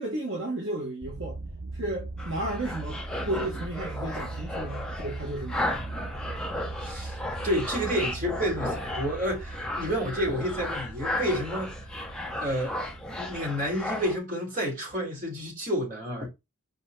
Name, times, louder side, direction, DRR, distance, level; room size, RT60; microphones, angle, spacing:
voice 1, 0.0-1.4 1.7-5.8, right 1 dB, 60° right, 1.5 m, -33 dB
sound 1, 1.0-14.2, right 2 dB, 85° right, 0.9 m, -39 dB
sound 2, 2.2-14.2, left 1 dB, 5° left, 0.8 m, -35 dB
voice 2, 6.8-7.2 7.4-11.9 12.4-12.8 13.1-16.3, equal, 35° right, 3.1 m, -30 dB
5.3 x 4.4 x 4.0 m
head